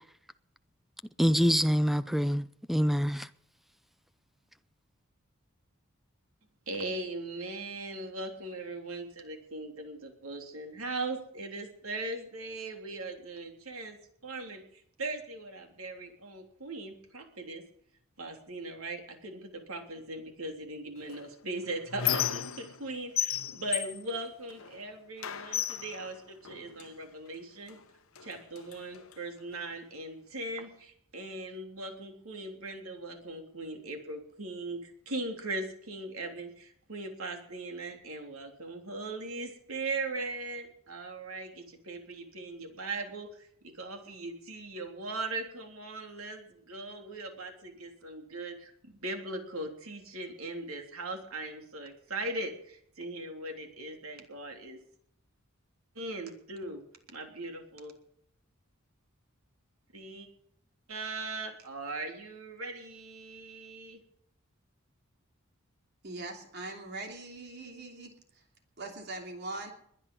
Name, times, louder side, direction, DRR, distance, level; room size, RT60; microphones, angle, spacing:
voice 1, 1.2-3.3, equal, ahead, 0.6 m, -26 dB
voice 2, 6.7-17.6 18.2-27.8 28.2-54.8 55.9-57.9 59.9-60.3 60.9-64.0, right 2 dB, 90° right, 3.4 m, -39 dB
Squeak, 21.1-22.9 23.2-24.8 25.2-26.9 27.7-27.8 28.1-29.2, left 10 dB, 75° left, 1.1 m, -34 dB
voice 3, 66.0-68.1 68.8-69.7, right 2 dB, 50° right, 3.0 m, -41 dB
21.5 x 10.0 x 5.5 m
head